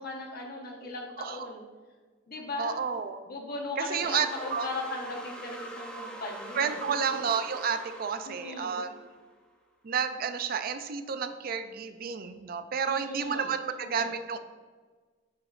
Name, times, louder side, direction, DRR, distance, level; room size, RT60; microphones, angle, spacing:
voice 1, 0.0-1.6 2.3-2.8 3.3-6.8 8.3-8.8 12.9-13.5 13.8-14.1, left 2 dB, 55° left, 1 dB, 1.1 m, -38 dB
voice 2, 2.6-3.2 3.8-4.7 6.5-9.1 9.8-14.4, right 6 dB, 55° right, 9 dB, 0.4 m, -31 dB
sound 1, 4.0-9.3, right 1 dB, 5° left, 0.8 m, -43 dB
9.3 x 4.9 x 2.5 m, 1.5 s
head